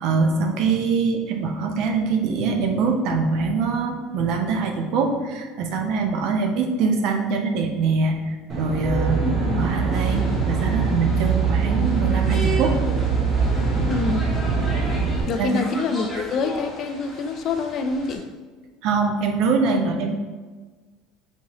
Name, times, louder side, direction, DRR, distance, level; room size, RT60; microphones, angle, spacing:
voice 1, 0.0-9.2 9.5-12.8 15.4-15.7 18.8-20.1, right 4 dB, 60° right, 4 dB, 0.6 m, -23 dB
Aircraft, 8.5-15.2, right 5 dB, 35° right, 0.9 m, -22 dB
voice 2, 9.2-9.8 13.9-14.3 15.3-18.2, left 4 dB, 40° left, 7 dB, 0.3 m, -26 dB
sound 1, 9.9-18.2, equal, 10° left, 1.0 m, -37 dB
4.2 x 3.6 x 3.0 m, 1.4 s
cardioid pair, 145°, 0 cm